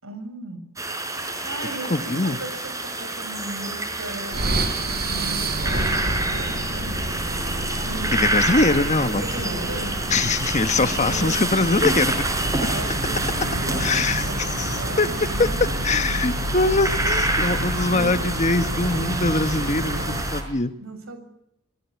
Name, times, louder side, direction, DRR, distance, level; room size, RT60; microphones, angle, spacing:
voice 1, 0.0-0.6 1.5-4.5 4.8-7.0 7.9-8.1 9.0-10.0 10.7-11.4 12.6-15.8 16.1-16.2 17.9-18.3 20.8-21.2, right 1 dB, 85° right, 9 dB, 7.0 m, -36 dB
sound 1, 0.8-20.4, right 2 dB, 15° right, 4.9 m, -28 dB
sound 2, 1.4-2.6 3.2-15.9, left 1 dB, 15° left, 4.9 m, -44 dB
voice 2, 1.9-2.4 8.1-9.2 10.1-12.3 13.8-14.3 14.6-15.1 15.4-15.5 15.8-20.7, left 3 dB, 35° left, 10 dB, 1.3 m, -22 dB
sound 3, 4.3-20.5, right 1 dB, 50° right, 4.9 m, -29 dB
27.5 x 19.5 x 8.4 m, 0.83 s
head